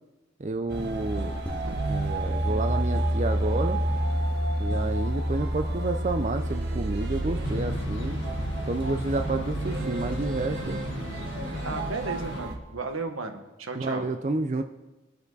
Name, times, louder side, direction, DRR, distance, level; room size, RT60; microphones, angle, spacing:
voice 1, 0.4-1.4 1.9-3.8 4.6-8.2 8.7-10.8 13.7-14.6, right 2 dB, 35° right, 7 dB, 0.5 m, -30 dB
sound 1, 0.7-12.6, right 2 dB, 55° right, 1.6 m, -33 dB
sound 2, 1.5-11.0, equal, 10° left, 1.1 m, -30 dB
sound 3, 7.4-12.4, left 1 dB, 70° left, 1.5 m, -38 dB
voice 2, 11.6-14.1, right 3 dB, 85° right, 5 dB, 1.4 m, -34 dB
23.0 x 8.1 x 4.0 m, 1.1 s
head